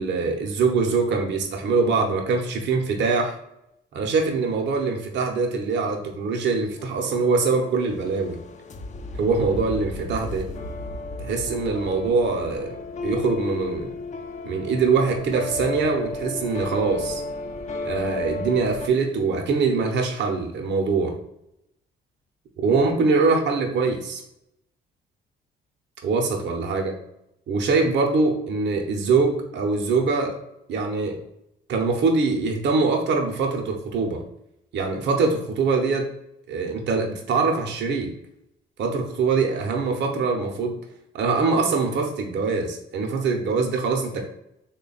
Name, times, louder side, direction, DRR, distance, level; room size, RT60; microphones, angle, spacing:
voice 1, 0.0-3.3 3.9-8.4 9.2-10.5 11.2-12.7 13.0-13.9 14.4-17.2 17.8-21.1 22.6-24.2 26.0-26.9 27.5-30.3 30.7-31.2 31.7-34.2 34.7-36.1 36.5-38.1 38.8-40.8 41.1-44.2, right 4 dB, 65° right, 2 dB, 0.6 m, -23 dB
sound 1, 6.0-18.9, left 2 dB, 35° left, 0.4 m, -34 dB
3.3 x 2.2 x 3.9 m, 0.80 s
cardioid pair, 90°, 20 cm